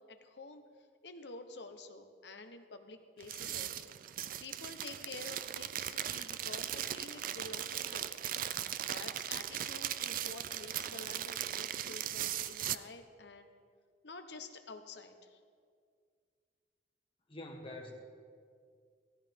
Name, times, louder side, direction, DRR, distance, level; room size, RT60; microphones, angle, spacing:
voice 1, 0.1-0.6 1.0-4.0 4.4-8.1 8.8-13.5 14.0-15.4, left 3 dB, 75° left, 7 dB, 1.0 m, -49 dB
sound 1, 3.2-12.8, right 11 dB, 50° right, 0.4 m, -38 dB
voice 2, 17.3-17.9, left 1 dB, 30° left, 1 dB, 1.6 m, -45 dB
16.0 x 14.0 x 3.6 m, 2.1 s
head